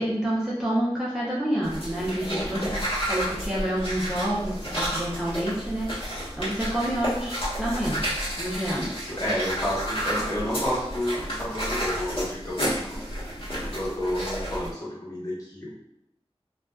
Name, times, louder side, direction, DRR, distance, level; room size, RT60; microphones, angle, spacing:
voice 1, 0.0-2.7 3.1-8.1 8.3-8.8, right 1 dB, 5° right, -7 dB, 0.6 m, -28 dB
sound 1, 1.6-14.7, equal, 55° left, 1.2 m, -31 dB
voice 2, 2.3-2.6 8.6-15.7, equal, 35° left, -8 dB, 1.1 m, -31 dB
2.5 x 2.3 x 2.3 m, 0.80 s
wide cardioid pair, 45°, 11 cm